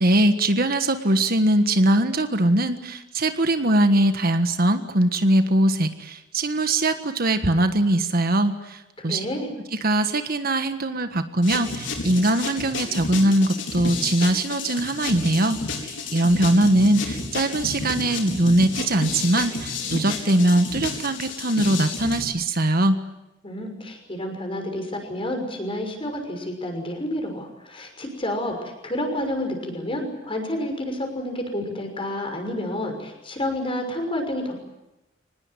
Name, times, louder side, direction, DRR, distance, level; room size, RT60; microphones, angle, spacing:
voice 1, 0.0-8.8 9.0-9.2 9.7-15.6 15.8-23.0, right 1 dB, 50° right, 9 dB, 1.5 m, -21 dB
voice 2, 9.0-9.5 23.4-34.5, left 1 dB, 30° left, 4 dB, 6.1 m, -29 dB
sound 1, 11.4-22.2, left 3 dB, 75° left, 4.8 m, -31 dB
25.0 x 20.0 x 9.8 m, 0.96 s
head